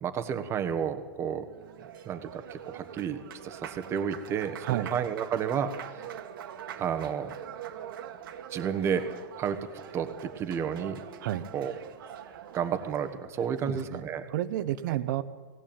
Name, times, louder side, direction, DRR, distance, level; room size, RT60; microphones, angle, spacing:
voice 1, 0.0-1.5 2.0-6.0 6.8-7.3 8.5-9.6 9.9-11.0 11.5-11.7 12.5-14.2, right 7 dB, 20° right, 8 dB, 1.4 m, -31 dB
Applause, 1.4-13.2, right 10 dB, 75° right, 2.1 m, -43 dB
voice 2, 4.6-4.9 11.2-11.5 13.6-14.0 14.3-15.2, right 13 dB, 60° right, 13 dB, 1.3 m, -30 dB
20.0 x 16.0 x 9.0 m, 1.5 s
supercardioid pair, 155°, 12 cm